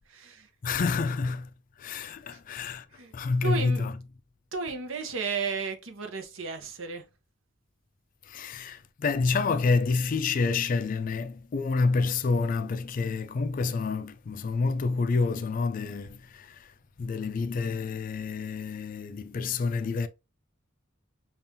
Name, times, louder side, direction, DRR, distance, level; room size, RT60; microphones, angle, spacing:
voice 1, 0.1-0.5 2.3-2.4 2.9-3.1 3.4-3.9 4.5-7.0, right 4 dB, 70° right, 0.8 m, -33 dB
voice 2, 0.6-1.5 1.8-2.9 3.1-4.0 8.3-16.7 17.0-20.1, left 4 dB, 40° left, 0.3 m, -28 dB
5.3 x 2.4 x 2.7 m
head